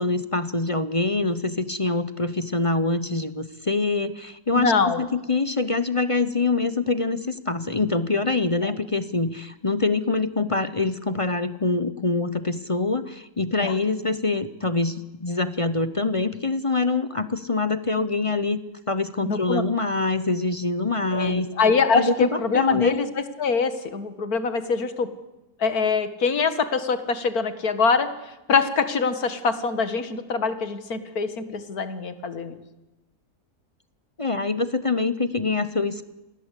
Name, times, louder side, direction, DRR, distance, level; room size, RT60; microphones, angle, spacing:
voice 1, 0.0-18.6 18.9-21.5 21.9-23.0 34.2-36.1, left 3 dB, 30° left, 13 dB, 0.7 m, -25 dB
voice 2, 4.5-5.0 13.6-13.7 19.3-19.6 21.1-23.1 23.4-25.1 25.6-28.1 28.5-32.6, left 5 dB, 70° left, 11 dB, 2.2 m, -23 dB
28.0 x 20.5 x 8.4 m, 1.0 s
omnidirectional pair, 1.7 m